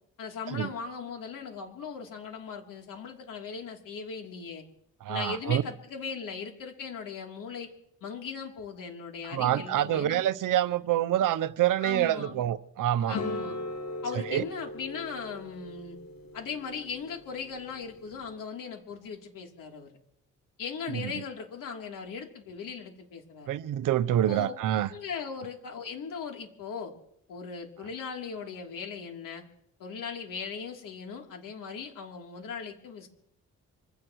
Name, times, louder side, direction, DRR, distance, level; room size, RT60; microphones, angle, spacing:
voice 1, 0.2-4.6 5.1-7.7 8.0-10.2 11.8-12.4 13.1-13.6 14.0-16.0 16.3-19.9 20.6-23.6 24.3-24.5 24.9-26.9 27.3-29.4 29.8-33.1, left 6 dB, 75° left, 3.3 m, -38 dB
voice 2, 5.0-5.6 9.2-13.2 14.1-14.4 20.9-21.1 23.5-24.9, right 12 dB, 70° right, 0.8 m, -27 dB
sound 1, 13.1-18.3, left 2 dB, 55° left, 3.6 m, -39 dB
25.5 x 17.0 x 3.2 m
cardioid pair, 90°, 33 cm